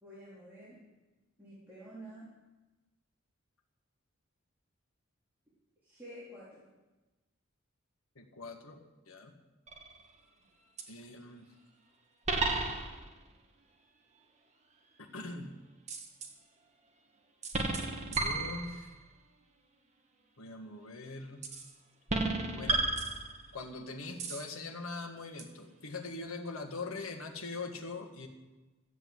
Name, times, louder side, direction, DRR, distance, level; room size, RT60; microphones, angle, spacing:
voice 1, 0.0-0.8 1.4-2.3 5.8-6.7, right 1 dB, 10° right, -10 dB, 3.7 m, -49 dB
voice 2, 8.1-8.8 9.1-9.3 10.9-11.4 15.0-15.6 18.1-18.9 20.4-21.5 22.5-22.9 23.5-28.3, left 3 dB, 80° left, 2 dB, 1.6 m, -42 dB
sound 1, 9.7-10.1 10.8-10.9 12.3-13.2 15.9-16.3 17.4-19.0 21.4-21.7 22.1-23.6 24.2-24.5 25.4-25.5, right 3 dB, 35° right, 1.5 m, -33 dB
14.0 x 7.9 x 7.8 m, 1.2 s
head